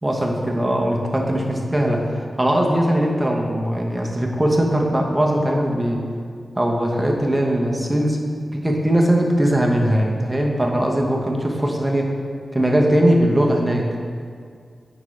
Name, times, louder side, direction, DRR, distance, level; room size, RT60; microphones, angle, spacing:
voice 1, 0.0-6.0 6.5-8.2 8.5-12.1 12.5-13.9, right 1 dB, 15° right, 0 dB, 0.9 m, -20 dB
8.9 x 4.9 x 3.2 m, 2.2 s
wide cardioid pair, 80°, 0 cm